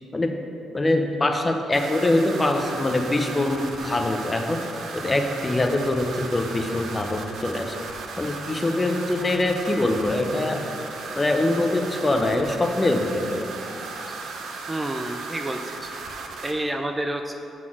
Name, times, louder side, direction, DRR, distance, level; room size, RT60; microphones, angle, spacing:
voice 1, 0.7-4.6 4.9-7.8 8.2-10.6 11.2-13.5 14.1-14.2, left 2 dB, 20° left, 4 dB, 0.6 m, -23 dB
sound 1, 1.7-16.5, right 3 dB, 70° right, 0.7 m, -36 dB
voice 2, 2.3-2.8 14.7-15.9 16.4-17.3, right 1 dB, 15° right, 5 dB, 0.3 m, -29 dB
5.9 x 3.9 x 6.1 m, 2.8 s
cardioid pair, 90°, 0 cm